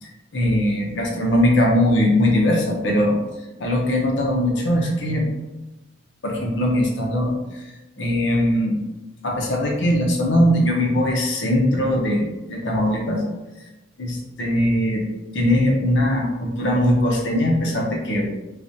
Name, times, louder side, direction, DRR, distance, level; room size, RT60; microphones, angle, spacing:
voice 1, 0.0-3.2 3.6-5.3 6.2-8.8 9.2-13.2 14.0-14.1 14.4-15.0 15.3-18.3, left 1 dB, 70° left, -1 dB, 0.7 m, -20 dB
4.8 x 2.4 x 2.7 m, 1.0 s
head